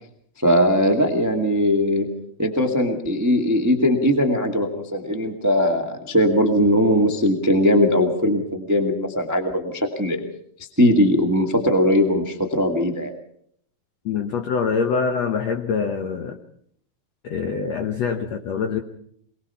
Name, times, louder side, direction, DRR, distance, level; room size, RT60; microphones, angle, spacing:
voice 1, 0.4-2.1 2.4-10.2 10.8-13.1, equal, 25° right, 4 dB, 0.4 m, -20 dB
voice 2, 14.0-16.4 17.2-18.8, left 5 dB, 75° left, 6 dB, 1.5 m, -24 dB
23.0 x 20.5 x 5.7 m, 0.66 s
omnidirectional pair, 4.6 m